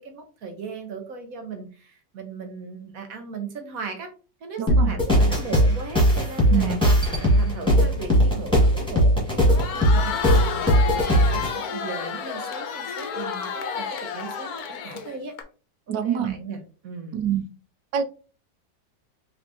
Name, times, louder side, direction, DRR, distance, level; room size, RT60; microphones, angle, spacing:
voice 1, 0.0-4.1 4.4-6.8 7.2-15.3 15.9-17.2, right 4 dB, 60° right, 5 dB, 1.2 m, -37 dB
voice 2, 4.6-4.9 6.5-6.8 15.9-16.4 17.1-17.4 17.9-18.0, right 9 dB, 80° right, 8 dB, 1.3 m, -25 dB
sound 1, 4.7-11.5, equal, 5° left, 1.9 m, -19 dB
Crowd, 9.4-15.4, left 6 dB, 65° left, 1.1 m, -31 dB
5.3 x 3.4 x 2.8 m, 0.36 s
omnidirectional pair, 1.9 m